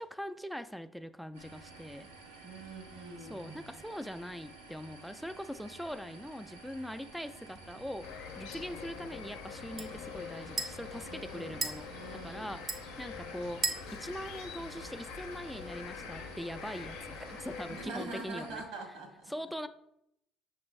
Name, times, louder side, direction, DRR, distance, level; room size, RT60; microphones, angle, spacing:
voice 1, 0.0-2.1 3.2-18.6 19.3-19.7, equal, ahead, 12 dB, 0.3 m, -42 dB
sound 1, 1.3-18.6, right 3 dB, 90° right, 0.7 m, -52 dB
voice 2, 2.4-3.7 11.1-11.6 11.9-12.5 17.7-19.3, right 2 dB, 70° right, 1 dB, 1.4 m, -44 dB
sound 2, 7.5-15.4, right 3 dB, 35° right, 0.6 m, -42 dB
sound 3, 8.0-17.9, left 6 dB, 70° left, 0.5 m, -45 dB
5.9 x 2.6 x 3.2 m, 0.78 s
hypercardioid pair, 60°, 0 cm